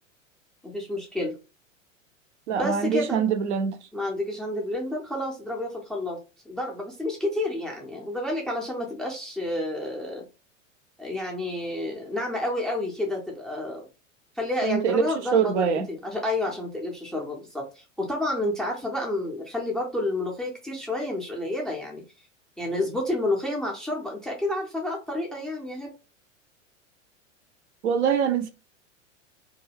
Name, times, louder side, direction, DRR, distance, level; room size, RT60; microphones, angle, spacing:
voice 1, 0.6-1.3 2.6-3.2 3.9-6.2 6.5-10.2 11.0-13.8 14.4-22.0 22.6-25.9, left 1 dB, ahead, 0.4 m, -30 dB
voice 2, 2.5-3.8 14.6-15.9 27.8-28.5, right 6 dB, 60° right, 0.5 m, -24 dB
2.3 x 2.2 x 3.2 m
figure-of-eight pair, 90°, 39 cm